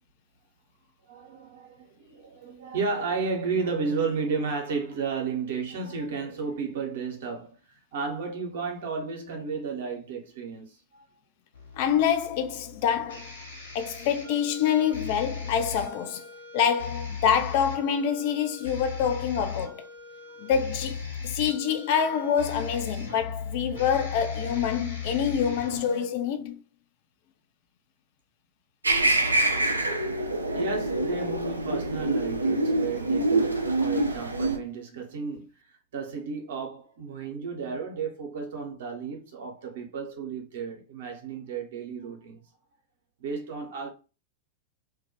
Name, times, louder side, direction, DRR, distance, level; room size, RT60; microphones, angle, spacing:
voice 1, 1.1-7.5 7.9-11.0 29.3-35.5 35.9-42.4 43.2-43.9, right 5 dB, 55° right, 0.7 m, -33 dB
sound 1, 11.5-26.0, left 5 dB, 70° left, 0.7 m, -38 dB
voice 2, 11.7-13.3 13.7-16.3 16.5-19.9 20.4-26.6, left 8 dB, 50° left, 0.4 m, -26 dB
sound 2, 28.8-34.6, right 2 dB, 80° right, 0.3 m, -25 dB
2.2 x 2.1 x 2.7 m
figure-of-eight pair, 90°, 0 cm